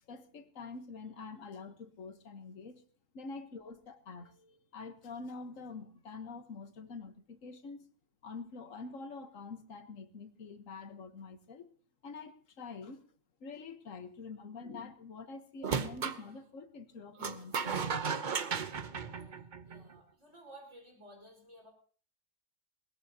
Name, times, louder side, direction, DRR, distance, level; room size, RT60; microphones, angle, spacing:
voice 1, 0.1-2.8 3.1-7.9 8.2-11.7 12.0-13.0 13.4-17.9, left 4 dB, 70° left, 9 dB, 1.6 m, -46 dB
sound 1, 15.6-16.2 17.2-19.9, right 6 dB, 45° right, 0.8 m, -35 dB
voice 2, 19.6-21.7, right 1 dB, 60° right, 1 dB, 5.5 m, -55 dB
21.0 x 19.5 x 2.8 m, 0.42 s
omnidirectional pair, 1.4 m